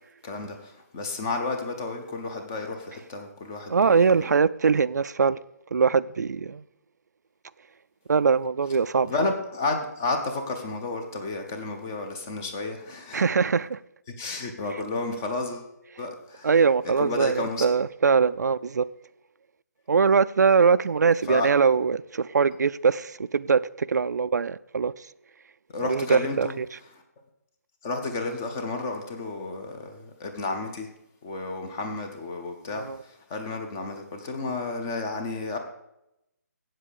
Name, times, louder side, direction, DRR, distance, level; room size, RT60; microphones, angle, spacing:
voice 1, 0.2-4.3 9.0-13.3 14.2-15.7 16.0-16.5 17.0-17.7 21.2-21.5 25.7-26.5 26.9-27.0 27.8-30.9 31.2-35.6, left 3 dB, 10° left, 0.5 m, -32 dB
voice 2, 3.7-5.4 5.7-6.6 8.1-9.3 13.1-13.8 14.7-14.8 16.4-18.8 19.9-24.9 25.8-26.8 32.7-33.0, right 5 dB, 80° right, 0.4 m, -22 dB
8.3 x 7.5 x 6.6 m
hypercardioid pair, 180°, 9 cm